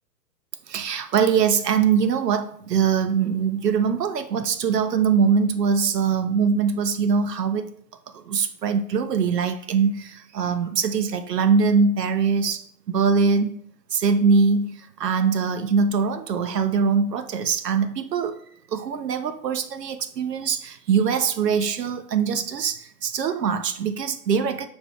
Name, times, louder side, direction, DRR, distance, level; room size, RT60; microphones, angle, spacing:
voice 1, 0.7-7.7 8.1-13.5 13.9-18.4 18.7-24.7, right 6 dB, 75° right, 9 dB, 0.5 m, -22 dB
5.9 x 2.6 x 3.3 m, 0.63 s
figure-of-eight pair, 130°, 49 cm